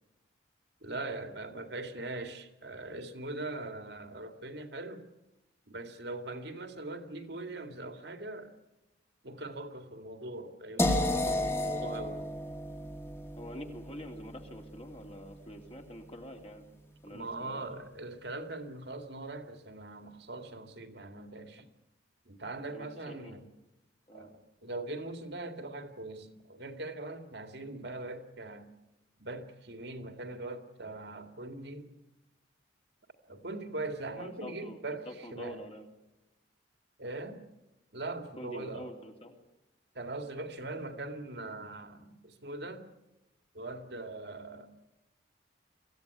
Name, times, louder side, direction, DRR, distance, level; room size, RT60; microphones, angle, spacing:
voice 1, 0.8-5.1 5.7-8.5 9.2-12.3 17.1-21.7 22.3-23.5 24.1-28.7 29.2-31.9 33.3-35.6 37.0-37.4 37.9-38.9 39.9-42.8 43.5-44.7, right 2 dB, 60° right, 2.1 m, -41 dB
sound 1, 10.8-16.7, left 1 dB, 15° left, 2.0 m, -34 dB
voice 2, 13.4-16.6 17.0-17.6 22.7-23.3 24.1-24.3 34.1-35.8 38.4-39.4, equal, 30° left, 3.0 m, -46 dB
24.5 x 16.0 x 9.6 m
head